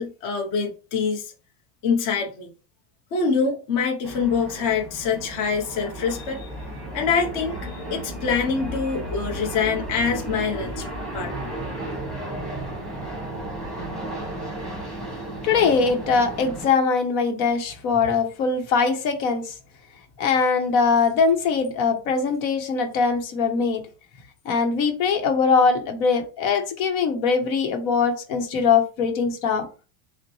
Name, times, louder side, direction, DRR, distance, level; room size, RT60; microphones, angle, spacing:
voice 1, 0.0-1.3 1.8-2.5 3.1-6.5 6.9-10.9 11.1-11.5, left 5 dB, 40° left, 0.8 m, -25 dB
sound 1, 4.0-16.7, right 1 dB, ahead, 1.1 m, -34 dB
voice 2, 15.4-19.5 20.2-23.8 24.4-29.7, left 5 dB, 70° left, 1.1 m, -21 dB
5.7 x 2.1 x 3.1 m
cardioid pair, 150°, 48 cm